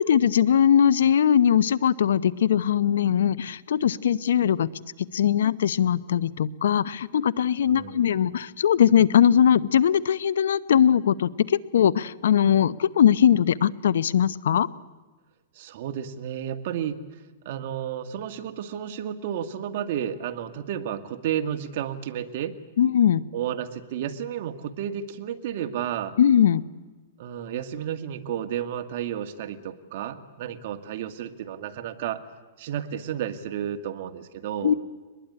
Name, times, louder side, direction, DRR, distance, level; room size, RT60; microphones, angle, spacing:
voice 1, 0.0-4.7 5.1-14.7 22.8-23.2 26.2-26.6 34.6-34.7, left 9 dB, 85° left, 19 dB, 0.9 m, -20 dB
voice 2, 7.6-8.1 15.5-22.5 23.3-26.1 27.2-32.2 32.6-34.8, right 9 dB, 55° right, 8 dB, 1.9 m, -32 dB
24.0 x 20.5 x 9.9 m, 1.3 s
hypercardioid pair, 155°, 0 cm